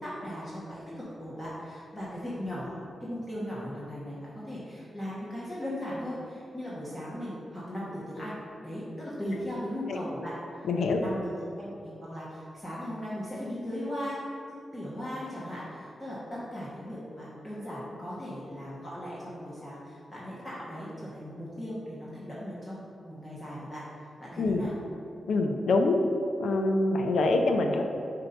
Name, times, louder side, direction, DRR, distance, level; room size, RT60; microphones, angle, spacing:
voice 1, 0.0-8.4 8.6-10.7 10.9-11.3 11.6-14.2 14.7-22.8 23.0-23.8 24.2-24.7, equal, 15° left, -9 dB, 1.2 m, -38 dB
voice 2, 10.6-11.0 24.4-24.6 25.2-26.0 26.4-27.8, left 2 dB, 85° left, 4 dB, 0.5 m, -25 dB
7.9 x 2.8 x 5.2 m, 2.6 s
wide cardioid pair, 140°, 0 cm